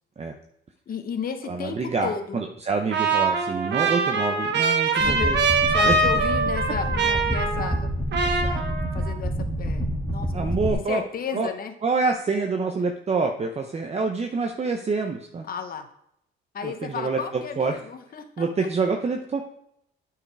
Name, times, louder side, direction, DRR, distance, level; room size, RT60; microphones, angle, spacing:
voice 1, 0.9-2.4 4.9-7.9 8.2-8.6 8.9-9.8 10.1-11.7 15.5-15.9 16.5-18.5, left 6 dB, 45° left, 7 dB, 0.9 m, -33 dB
voice 2, 1.5-5.4 5.8-6.0 10.3-11.0 11.3-11.5 11.8-15.4 16.6-17.8 18.4-19.4, right 4 dB, 30° right, 4 dB, 0.7 m, -26 dB
Trumpet, 2.9-9.1, right 3 dB, 60° right, 1.2 m, -23 dB
sound 1, 5.0-10.7, equal, 10° left, 1.7 m, -28 dB
8.6 x 4.8 x 4.8 m, 0.74 s
cardioid pair, 90°, 20 cm